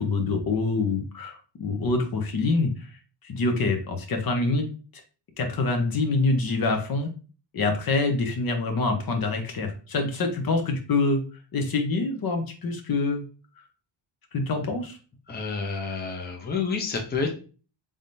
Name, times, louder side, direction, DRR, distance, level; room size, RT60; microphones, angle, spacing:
voice 1, 0.0-2.7 3.2-4.7 5.4-7.1 7.5-11.2 11.5-13.2 14.3-15.0, left 3 dB, 45° left, 4 dB, 0.9 m, -25 dB
voice 2, 15.3-17.4, left 4 dB, 20° left, 2 dB, 0.8 m, -29 dB
3.6 x 3.4 x 2.7 m, 0.36 s
cardioid pair, 100°, 49 cm